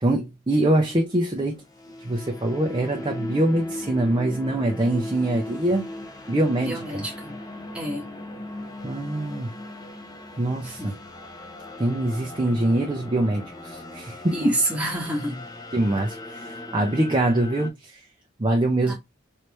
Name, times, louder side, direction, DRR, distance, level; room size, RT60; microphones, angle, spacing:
voice 1, 0.0-1.6 2.0-5.8 6.3-7.0 8.8-9.5 10.4-11.0 11.8-14.5 15.7-17.9 18.4-18.9, right 1 dB, 25° right, 0.6 m, -24 dB
sound 1, 1.4-17.7, left 1 dB, 20° left, 0.6 m, -38 dB
voice 2, 6.6-7.3 7.7-8.0 10.6-10.9 14.3-15.4 18.9-19.0, right 1 dB, 5° right, 1.1 m, -27 dB
3.2 x 3.1 x 2.8 m
head